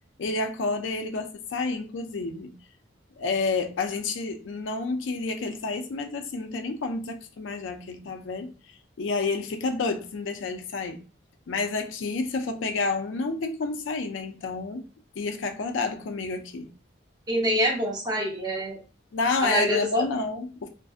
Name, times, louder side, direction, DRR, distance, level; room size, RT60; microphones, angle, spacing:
voice 1, 0.2-2.6 3.2-11.0 11.5-14.8 15.2-16.7 19.1-20.7, left 3 dB, 70° left, 0.4 m, -29 dB
voice 2, 17.3-18.8 19.4-20.1, equal, 20° right, 0.7 m, -26 dB
2.5 x 2.4 x 2.4 m
head